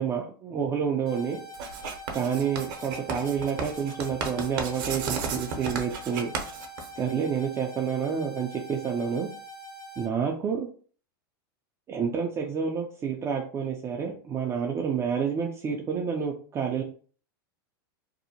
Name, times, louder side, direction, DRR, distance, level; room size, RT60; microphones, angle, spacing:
voice 1, 0.0-1.4 2.1-6.3 7.0-9.3 10.0-10.7 11.9-16.8, right 7 dB, 25° right, 1 dB, 0.4 m, -29 dB
sound 1, 1.1-10.1, equal, 80° left, 1.3 m, -44 dB
Writing, 1.5-7.4, right 5 dB, 60° right, 0.7 m, -34 dB
2.7 x 2.0 x 2.7 m, 0.43 s
hypercardioid pair, 120°, 12 cm